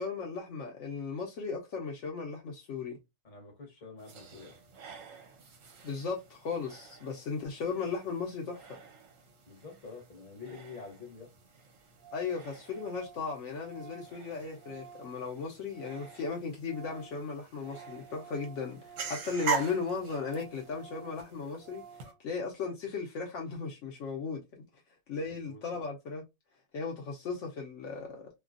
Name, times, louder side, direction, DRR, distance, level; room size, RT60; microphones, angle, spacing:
voice 1, 0.0-3.0 5.8-8.6 12.1-21.8 22.2-24.7 25.1-26.2 26.7-28.3, left 5 dB, 85° left, 0.6 m, -36 dB
voice 2, 3.2-4.6 9.5-11.3 25.4-25.8, left 4 dB, 35° left, 0.8 m, -47 dB
sound 1, 4.0-22.1, right 6 dB, 65° right, 0.8 m, -44 dB
Organ, 11.0-11.1 11.3-11.4 11.6-11.7 12.0-12.4 12.7-16.3 16.5-22.2, right 7 dB, 90° right, 1.3 m, -52 dB
3.2 x 2.2 x 2.4 m
omnidirectional pair, 1.9 m